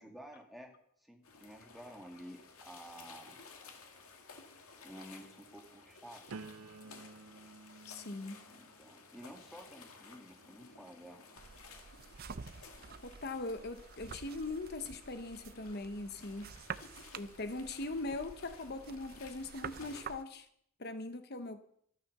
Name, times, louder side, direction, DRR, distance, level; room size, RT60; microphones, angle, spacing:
voice 1, 0.0-3.4 4.8-6.2 6.8-7.0 8.5-11.2, equal, ahead, 1 dB, 2.2 m, -52 dB
sound 1, 1.2-20.0, left 4 dB, 85° left, 2.3 m, -56 dB
sound 2, 6.3-12.1 12.7-13.1, right 4 dB, 85° right, 0.6 m, -54 dB
voice 2, 7.9-8.4 13.0-16.5 17.1-20.5 20.8-21.6, left 2 dB, 50° left, 9 dB, 1.0 m, -41 dB
sound 3, 11.3-20.2, right 6 dB, 45° right, 0.6 m, -49 dB
13.0 x 12.5 x 6.7 m, 0.68 s
head